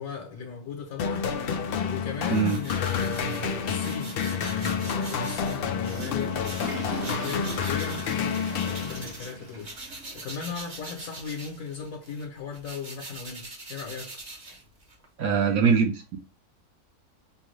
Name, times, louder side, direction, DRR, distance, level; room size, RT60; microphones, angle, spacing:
voice 1, 0.0-14.2, left 5 dB, 65° left, 1.2 m, -37 dB
sound 1, 1.0-9.4, left 6 dB, 80° left, 0.5 m, -29 dB
sound 2, 2.3-9.3 9.6-15.1, right 2 dB, 35° right, 0.8 m, -43 dB
Water / Toilet flush, 5.7-10.5 10.8-10.9 11.7-11.8 13.0-13.1, right 4 dB, 90° right, 1.6 m, -42 dB
voice 2, 15.2-16.2, right 6 dB, 70° right, 1.2 m, -22 dB
5.2 x 2.2 x 3.2 m
omnidirectional pair, 1.6 m